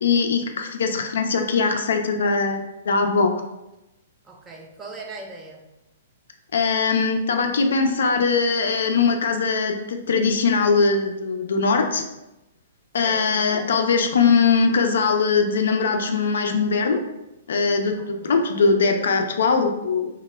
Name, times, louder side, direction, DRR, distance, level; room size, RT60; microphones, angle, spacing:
voice 1, 0.0-3.3 6.5-12.0 12.9-17.0 17.5-20.1, left 4 dB, 80° left, 5 dB, 0.3 m, -21 dB
voice 2, 4.2-5.7 13.0-13.4 18.2-18.4 18.6-18.8, right 3 dB, 15° right, 1 dB, 0.4 m, -40 dB
2.1 x 2.0 x 3.2 m, 0.94 s
hypercardioid pair, 150°, 0 cm